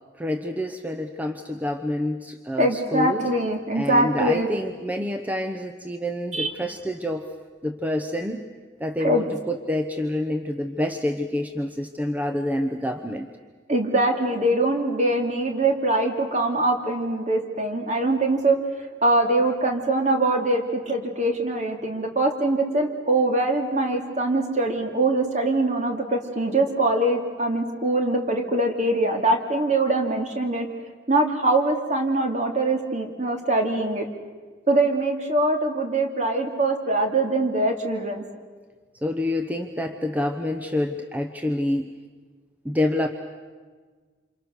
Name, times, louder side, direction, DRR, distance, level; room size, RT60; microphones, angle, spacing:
voice 1, 0.1-3.3 3.7-7.3 7.6-8.4 8.8-13.3 39.0-41.9 42.6-43.1, left 1 dB, 10° right, 6 dB, 0.9 m, -27 dB
voice 2, 2.6-4.5 6.3-6.5 9.0-9.2 13.7-18.6 19.0-30.7 31.1-34.1 34.7-38.2, right 2 dB, 40° right, 3 dB, 2.8 m, -23 dB
28.0 x 27.5 x 6.6 m, 1.5 s
head